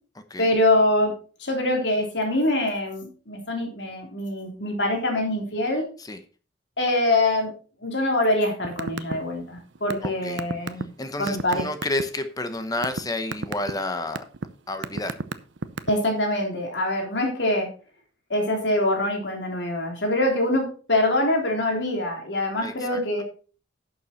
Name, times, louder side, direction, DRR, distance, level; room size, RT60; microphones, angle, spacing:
voice 1, 0.4-1.1 1.4-5.8 6.8-7.5 7.8-10.9 11.2-11.6 15.9-17.7 18.3-23.2, left 1 dB, 70° left, 2 dB, 3.3 m, -24 dB
sound 1, 8.6-9.2 9.4-12.0 12.5-13.0 13.3-13.7 14.2-14.4 14.8-16.1, right 3 dB, 80° right, 0.7 m, -29 dB
voice 2, 10.0-10.4 11.0-14.2 14.7-15.2 22.6-23.0, left 2 dB, 20° left, 9 dB, 0.9 m, -30 dB
11.0 x 7.0 x 4.3 m, 0.38 s
head